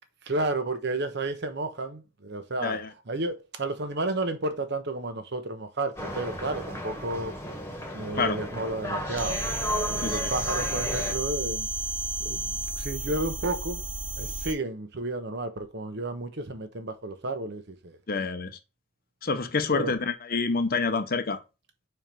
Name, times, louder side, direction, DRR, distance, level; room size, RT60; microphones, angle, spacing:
voice 1, 0.3-7.3 7.9-9.4 9.8-11.7 12.2-13.8 14.1-18.0 19.7-19.9, right 2 dB, 55° right, 1.0 m, -32 dB
sound 1, 6.0-11.1, left 1 dB, 15° left, 1.4 m, -34 dB
sound 2, 9.2-14.5, right 2 dB, 30° right, 1.7 m, -32 dB
voice 2, 10.0-10.3 18.1-18.5 19.2-21.4, left 4 dB, 50° left, 0.8 m, -27 dB
5.3 x 4.6 x 4.5 m
head